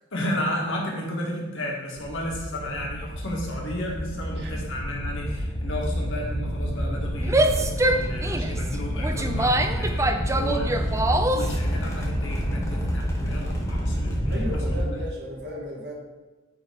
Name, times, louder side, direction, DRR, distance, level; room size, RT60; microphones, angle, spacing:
voice 1, 0.1-14.4 14.7-14.8, left 1 dB, 65° left, -2 dB, 2.0 m, -33 dB
sound 1, 2.0-14.8, equal, 15° left, 1.4 m, -29 dB
Female speech woman speaking / Yell, 7.2-11.6, right 1 dB, 15° right, 0.4 m, -24 dB
voice 2, 14.3-15.9, equal, 55° right, -4 dB, 2.2 m, -34 dB
9.2 x 4.1 x 5.2 m, 1.2 s
head